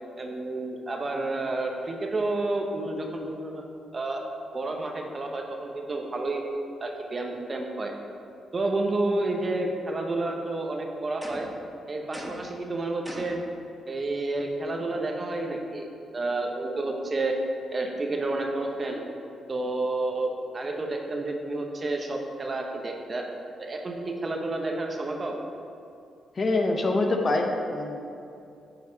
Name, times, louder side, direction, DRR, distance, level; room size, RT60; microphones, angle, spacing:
voice 1, 0.2-3.6 3.9-4.2 4.5-6.4 6.8-7.9 8.5-11.5 11.9-13.4 13.9-17.4 17.7-19.0 19.5-23.2 23.6-25.4, right 2 dB, 40° right, 2 dB, 1.1 m, -30 dB
sound 1, 11.2-11.6 12.1-12.6 13.0-13.5, equal, 5° right, 1.5 m, -39 dB
voice 2, 26.4-28.0, left 2 dB, 45° left, 3 dB, 0.9 m, -25 dB
9.7 x 4.9 x 4.1 m, 2.5 s
supercardioid pair, 55°, 0 cm